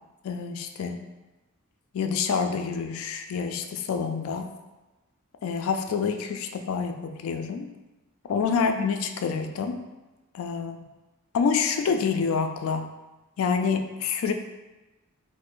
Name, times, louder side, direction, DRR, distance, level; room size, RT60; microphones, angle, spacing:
voice 1, 0.2-1.0 1.9-4.5 5.4-7.7 8.3-9.8 10.3-10.8 11.3-12.9 13.4-14.3, left 5 dB, 70° left, 6 dB, 0.3 m, -27 dB
4.3 x 2.0 x 2.5 m, 1.1 s
head